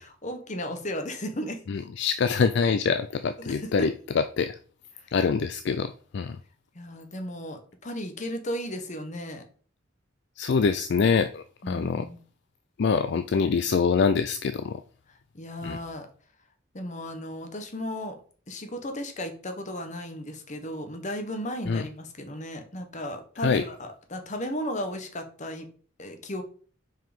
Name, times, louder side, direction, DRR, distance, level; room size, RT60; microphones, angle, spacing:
voice 1, 0.0-1.6 3.4-3.9 5.0-5.1 6.7-9.4 11.6-12.2 15.1-16.1 16.7-18.2 18.5-25.7 26.0-26.4, equal, 40° left, 6 dB, 1.2 m, -35 dB
voice 2, 1.7-4.6 5.1-6.4 10.4-12.1 12.8-14.8 15.6-15.8 21.7-21.8 23.4-23.6, left 5 dB, 60° left, 11 dB, 0.4 m, -25 dB
6.0 x 4.8 x 5.2 m, 0.43 s
head